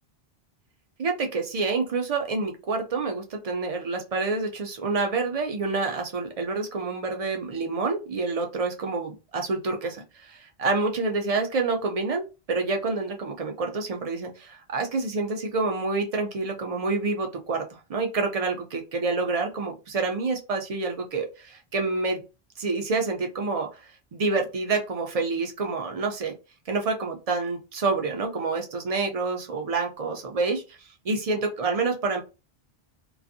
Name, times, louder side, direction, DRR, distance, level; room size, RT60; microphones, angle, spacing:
voice 1, 1.0-22.2 22.6-26.3 26.7-30.8 31.0-32.2, right 3 dB, 45° right, 3 dB, 0.5 m, -28 dB
2.5 x 2.4 x 2.6 m, 0.29 s
omnidirectional pair, 1.1 m